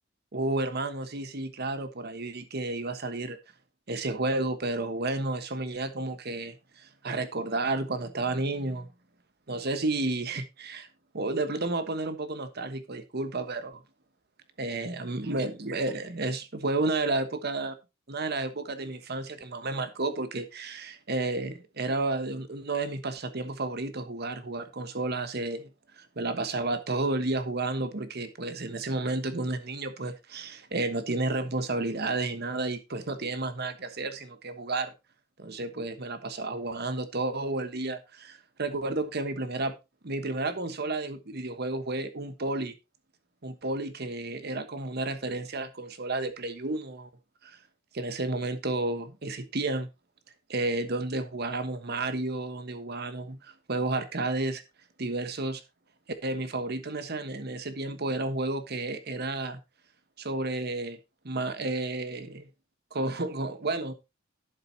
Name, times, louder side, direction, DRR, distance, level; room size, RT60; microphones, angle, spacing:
voice 1, 0.3-3.4 3.9-8.9 9.5-10.9 11.1-13.8 14.6-17.8 18.1-25.7 26.0-34.9 35.4-39.7 40.0-42.8 43.4-47.1 47.4-47.6 47.9-49.9 50.5-54.6 55.0-55.6 56.2-59.6 60.2-61.0 61.2-62.5 62.9-63.9, right 2 dB, 55° right, 1.2 m, -31 dB
11.5 x 7.7 x 2.8 m
head